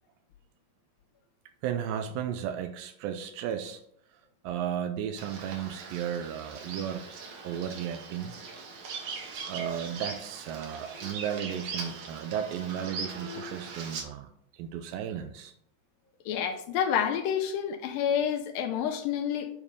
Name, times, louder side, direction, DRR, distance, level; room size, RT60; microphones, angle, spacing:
voice 1, 1.6-3.8 4.4-7.1 7.4-8.4 9.5-15.5, right 9 dB, 90° right, 2.4 m, -34 dB
Bird vocalization bird call bird song, 5.2-14.0, right 4 dB, 70° right, 2.7 m, -40 dB
voice 2, 16.3-19.5, left 8 dB, 85° left, 2.4 m, -29 dB
7.4 x 4.9 x 5.3 m
omnidirectional pair, 4.0 m